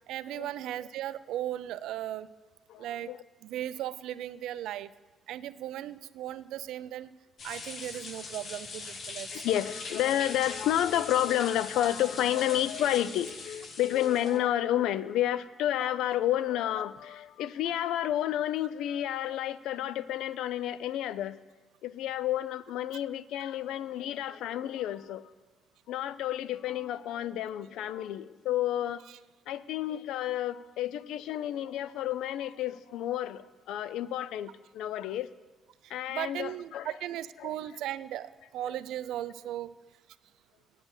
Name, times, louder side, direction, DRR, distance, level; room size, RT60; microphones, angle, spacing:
voice 1, 0.1-2.3 2.8-3.1 3.4-4.9 5.3-7.1 7.4-9.4 15.8-15.9 29.1-29.2 35.8-39.7, right 12 dB, 85° right, 16 dB, 0.4 m, -37 dB
voice 2, 2.7-3.2 9.3-21.4 21.8-25.3 25.9-29.0 29.5-35.3 35.9-36.9 37.4-37.5, left 12 dB, 85° left, 16 dB, 0.4 m, -30 dB
sound 1, 7.4-14.4, left 4 dB, 55° left, 1.5 m, -42 dB
9.3 x 8.2 x 7.1 m, 1.2 s
cardioid pair, 90°, 0 cm